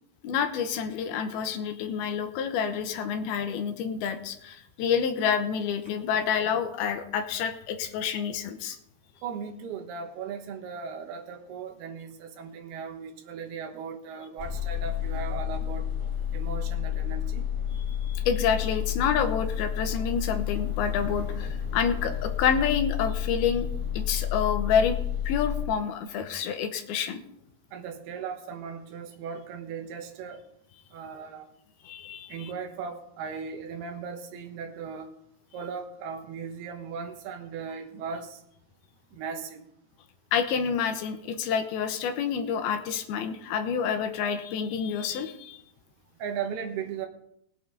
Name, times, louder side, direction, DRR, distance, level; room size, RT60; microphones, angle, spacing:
voice 1, 0.2-8.8 18.0-23.7 23.9-25.0 25.3-27.2 31.8-32.5 40.3-45.6, left 7 dB, 80° left, 8 dB, 2.8 m, -28 dB
voice 2, 9.2-15.9 16.3-17.5 27.7-30.4 30.9-31.5 32.3-35.1 35.5-38.4 39.1-39.6 46.2-47.1, right 6 dB, 85° right, 5 dB, 3.2 m, -37 dB
sound 1, 14.4-25.6, left 10 dB, 15° right, 1.7 m, -30 dB
19.5 x 8.7 x 3.9 m, 0.76 s
omnidirectional pair, 4.6 m